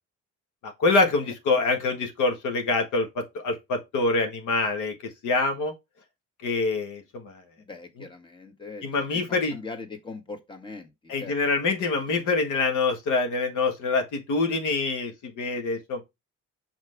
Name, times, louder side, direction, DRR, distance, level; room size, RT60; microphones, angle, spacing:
voice 1, 0.6-4.9 5.2-5.7 6.4-7.4 8.8-9.6 11.1-16.0, left 3 dB, 85° left, 1.7 m, -25 dB
voice 2, 7.6-8.8 9.3-11.4, left 3 dB, 15° left, 1.5 m, -40 dB
5.6 x 4.9 x 3.5 m
cardioid pair, 90°, 30 cm